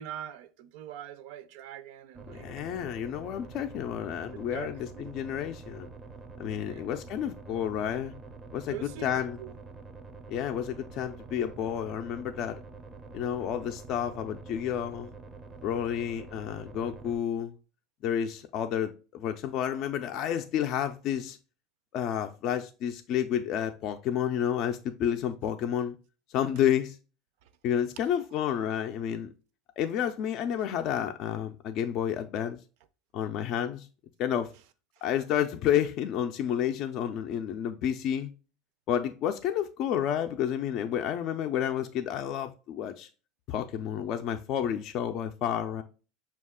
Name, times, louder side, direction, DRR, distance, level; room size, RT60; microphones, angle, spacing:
voice 1, 0.0-2.5 4.3-5.2 6.7-6.9 8.7-9.5 27.4-27.5 35.0-35.1, right 10 dB, 70° right, 0.5 m, -43 dB
sound 1, 2.1-17.2, right 4 dB, 15° right, 0.4 m, -46 dB
voice 2, 2.3-5.9 6.4-8.1 8.5-8.8 9.0-9.4 10.3-12.6 13.1-15.1 15.6-17.5 18.0-21.4 21.9-26.0 26.3-27.0 27.6-29.3 29.8-32.6 33.1-33.9 34.2-34.5 35.0-38.3 38.9-43.1 43.5-45.8, left 9 dB, 45° left, 0.3 m, -30 dB
6.2 x 2.3 x 3.5 m
cardioid pair, 145°, 0 cm